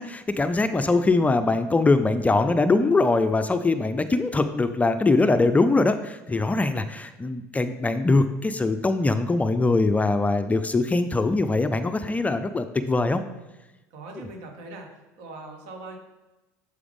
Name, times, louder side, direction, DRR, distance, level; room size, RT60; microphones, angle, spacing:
voice 1, 0.0-13.2 14.1-14.3, left 3 dB, 15° left, 10 dB, 0.4 m, -22 dB
voice 2, 13.9-14.9 15.2-16.0, right 2 dB, 70° right, 3 dB, 1.4 m, -41 dB
6.8 x 4.8 x 3.6 m, 1.1 s
hypercardioid pair, 80°, 9 cm